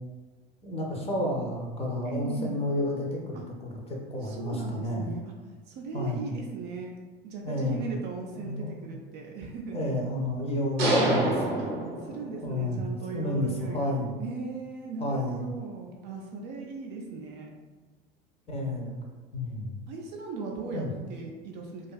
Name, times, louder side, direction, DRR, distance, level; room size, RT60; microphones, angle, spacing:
voice 1, 0.6-5.2 5.9-6.3 7.4-7.8 8.3-9.0 9.7-11.7 12.4-12.8 13.1-14.1 15.0-15.5 18.5-18.9 19.3-19.7 20.7-20.9, left 1 dB, 20° left, -1 dB, 0.5 m, -31 dB
voice 2, 2.0-2.6 3.3-3.4 4.2-5.2 5.7-6.9 7.2-9.8 11.6-11.7 12.0-17.5 19.9-21.9, right 4 dB, 35° right, 0 dB, 0.4 m, -38 dB
sound 1, 10.8-12.6, right 1 dB, 80° right, 0.6 m, -26 dB
2.5 x 2.3 x 2.2 m, 1.3 s
hypercardioid pair, 80°, 29 cm